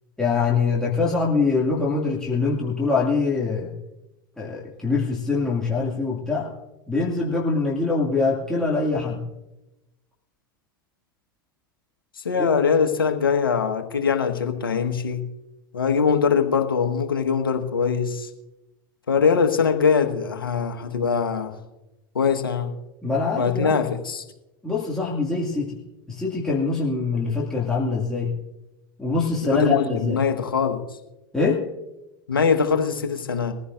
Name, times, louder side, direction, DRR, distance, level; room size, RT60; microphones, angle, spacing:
voice 1, 0.2-3.7 4.4-6.5 6.9-9.2 12.4-12.5 23.0-23.8 24.6-25.8 26.1-28.3 29.0-30.2 31.3-31.6, left 4 dB, 5° left, -5 dB, 2.2 m, -24 dB
voice 2, 12.2-15.2 15.7-18.3 19.1-21.5 22.1-22.7 23.3-24.2 29.5-30.8 32.3-33.5, left 6 dB, 85° left, 6 dB, 1.3 m, -22 dB
21.5 x 15.5 x 2.5 m, 0.97 s
hypercardioid pair, 90°, 12 cm